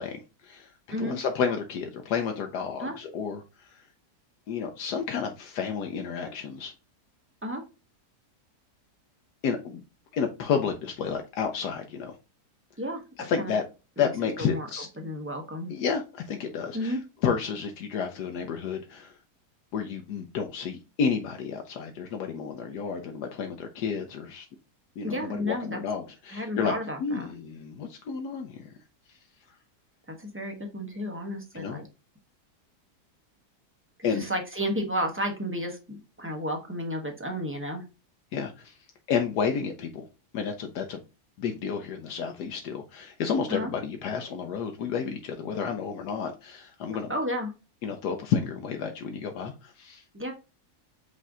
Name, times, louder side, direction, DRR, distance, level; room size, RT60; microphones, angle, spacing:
voice 1, 0.0-3.4 4.5-6.7 9.4-9.8 10.1-12.1 13.2-13.6 14.0-14.9 15.7-19.1 19.7-24.5 25.0-28.7 31.5-31.8 34.0-34.3 38.3-38.7 39.1-40.1 40.3-41.0 41.4-47.1 47.8-50.0, left 6 dB, 80° left, 4 dB, 1.2 m, -31 dB
voice 2, 12.8-13.5 14.0-14.1 14.4-14.7 15.0-15.7 16.7-17.0 25.0-25.8 26.3-27.3 30.2-31.9 34.0-37.8 43.5-43.7 47.1-47.5 50.1-50.3, equal, 10° right, 2 dB, 0.7 m, -32 dB
5.2 x 2.7 x 3.6 m, 0.29 s
omnidirectional pair, 1.7 m